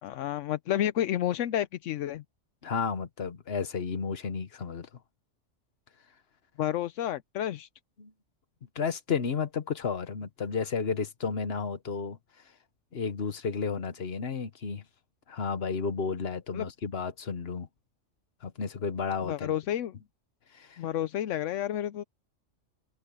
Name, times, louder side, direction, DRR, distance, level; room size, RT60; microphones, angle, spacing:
voice 1, 0.0-2.2 6.6-7.7 16.5-16.7 19.2-19.9 20.8-22.0, left 11 dB, 80° left, 1.0 m, -30 dB
voice 2, 2.6-4.9 8.0-8.1 8.7-12.2 12.9-14.8 15.3-17.7 18.4-19.5 20.5-20.8, left 5 dB, 55° left, 1.4 m, -32 dB
omnidirectional pair, 1.3 m